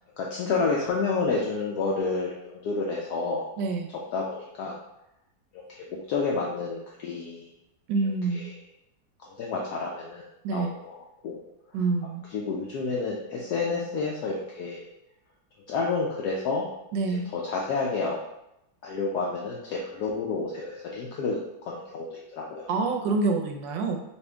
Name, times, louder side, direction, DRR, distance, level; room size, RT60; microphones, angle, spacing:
voice 1, 0.2-3.5 3.9-4.8 5.5-7.5 8.0-8.5 9.2-10.3 10.5-11.4 12.3-14.9 15.7-16.7 17.3-18.2 18.8-22.7, left 4 dB, 70° left, -2 dB, 1.0 m, -30 dB
voice 2, 3.6-3.9 7.9-8.5 10.4-10.7 11.7-12.2 16.9-17.3 22.7-24.0, right 3 dB, 75° right, 3 dB, 1.3 m, -27 dB
4.3 x 2.5 x 3.3 m, 0.85 s
omnidirectional pair, 2.0 m